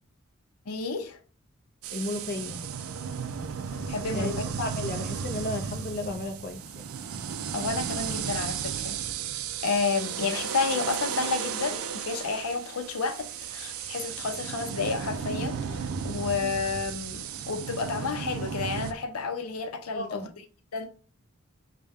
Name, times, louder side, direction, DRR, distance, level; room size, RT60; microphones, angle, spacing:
voice 1, 0.7-1.2 3.7-4.4 7.5-9.0 9.6-20.2 20.7-20.9, left 4 dB, 85° left, 0.6 m, -31 dB
sound 1, 1.8-18.9, right 7 dB, 75° right, 0.4 m, -34 dB
voice 2, 1.9-2.6 4.1-6.9 19.9-20.3, left 2 dB, 40° left, 0.5 m, -34 dB
6.6 x 2.2 x 3.4 m
head